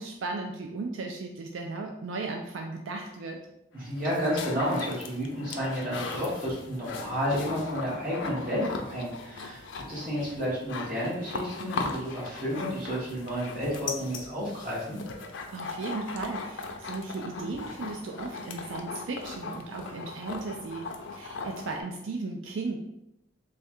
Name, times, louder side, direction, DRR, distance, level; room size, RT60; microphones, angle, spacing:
voice 1, 0.0-3.4 15.5-22.8, right 3 dB, 90° right, 2 dB, 0.4 m, -36 dB
voice 2, 3.7-15.0, equal, 45° right, -6 dB, 1.4 m, -31 dB
sound 1, 3.8-21.8, left 4 dB, 80° left, 0.5 m, -39 dB
3.3 x 2.3 x 4.2 m, 0.86 s
head